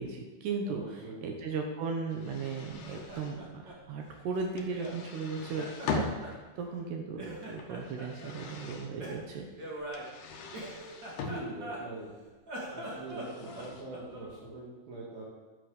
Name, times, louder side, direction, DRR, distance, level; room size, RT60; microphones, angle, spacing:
voice 1, 0.0-9.7, right 4 dB, 70° right, 3 dB, 2.8 m, -37 dB
voice 2, 0.7-1.3 11.2-12.2 12.7-15.3, right 2 dB, 55° right, -5 dB, 3.7 m, -43 dB
sound 1, 2.1-3.4 4.6-6.4 7.4-8.9 9.9-11.4 13.0-13.8, left 4 dB, 65° left, 2.2 m, -40 dB
Laughter, 2.8-5.0 5.3-6.9 7.1-8.3 9.0-12.1 12.4-14.3, right 1 dB, 30° right, 2.2 m, -43 dB
11.0 x 9.3 x 7.2 m, 1.3 s
omnidirectional pair, 5.7 m